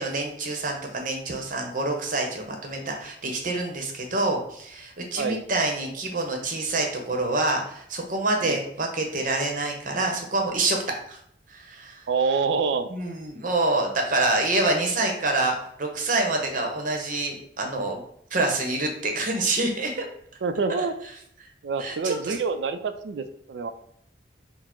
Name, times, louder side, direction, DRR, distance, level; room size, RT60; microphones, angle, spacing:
voice 1, 0.0-10.8 11.1-11.2 11.5-12.0 12.9-18.0 18.3-20.1 20.8-20.9 21.8-22.4, right 2 dB, 50° right, 2 dB, 0.7 m, -26 dB
voice 2, 12.1-12.9 20.4-20.9 21.6-23.7, right 4 dB, 75° right, 9 dB, 0.4 m, -26 dB
4.2 x 2.0 x 4.3 m, 0.69 s
head